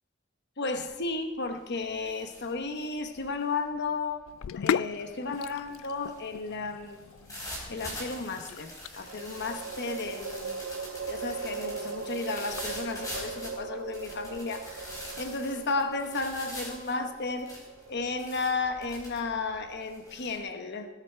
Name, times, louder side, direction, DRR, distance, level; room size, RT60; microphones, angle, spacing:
voice 1, 0.6-4.2 4.5-7.0 7.7-10.7 11.1-17.5 17.9-20.9, left 3 dB, 55° left, 6 dB, 1.1 m, -33 dB
sound 1, 0.7-1.1 1.4-20.4, equal, 15° left, 4.6 m, -44 dB
Sink (filling or washing), 4.3-15.1, left 8 dB, 75° left, 0.3 m, -39 dB
sound 2, 5.9-6.7 9.0-20.3, right 5 dB, 70° right, 0.6 m, -40 dB
20.5 x 8.8 x 4.5 m, 1.2 s
head